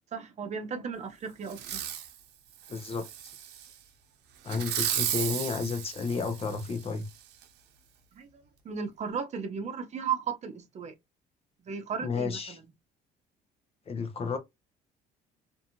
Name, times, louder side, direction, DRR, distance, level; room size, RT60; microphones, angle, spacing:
voice 1, 0.1-1.8 8.2-10.9 11.7-12.6, right 6 dB, 40° right, 0.7 m, -35 dB
Fireworks, 1.5-2.1 2.6-3.7 4.5-6.9 7.4-7.5, right 10 dB, 85° right, 0.7 m, -34 dB
voice 2, 2.7-3.1 4.4-7.1 12.0-12.6 13.9-14.4, left 5 dB, 35° left, 0.6 m, -32 dB
2.6 x 2.4 x 2.8 m
cardioid pair, 110°, 17 cm